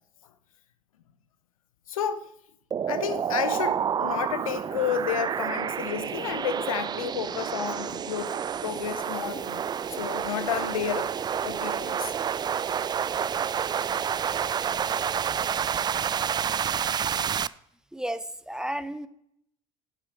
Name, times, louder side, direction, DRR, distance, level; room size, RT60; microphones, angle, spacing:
voice 1, 1.9-2.3 2.9-8.3 8.6-11.1 11.4-12.1 16.7-16.8 17.1-17.3, left 9 dB, 80° left, 0.8 m, -31 dB
sound 1, 2.7-17.5, right 8 dB, 25° right, 0.4 m, -29 dB
voice 2, 17.9-19.1, right 1 dB, 5° right, 0.9 m, -33 dB
10.0 x 7.5 x 5.1 m
hypercardioid pair, 65°, 17 cm